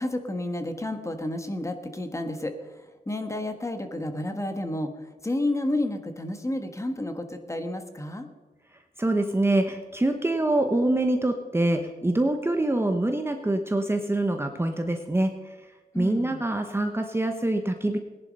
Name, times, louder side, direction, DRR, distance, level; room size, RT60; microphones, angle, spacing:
voice 1, 0.0-2.6 3.1-4.9 5.2-8.3 15.9-16.4, left 1 dB, 15° left, 7 dB, 1.6 m, -30 dB
voice 2, 9.0-15.3 16.0-18.0, right 1 dB, 15° right, 5 dB, 1.0 m, -25 dB
18.0 x 10.5 x 5.4 m, 1.2 s
cardioid pair, 95°, 17 cm